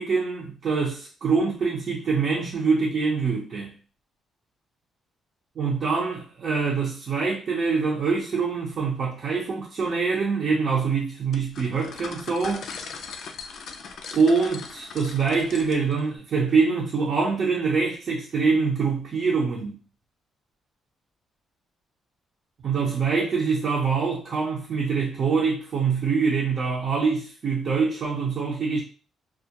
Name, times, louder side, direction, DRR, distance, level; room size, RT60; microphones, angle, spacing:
voice 1, 0.0-3.7 5.6-12.7 14.1-19.7 22.6-28.8, right 5 dB, 55° right, 0.6 m, -24 dB
sound 1, 11.3-16.0, left 5 dB, 65° left, 0.3 m, -39 dB
2.3 x 2.1 x 2.8 m
cardioid pair, 90°, 0 cm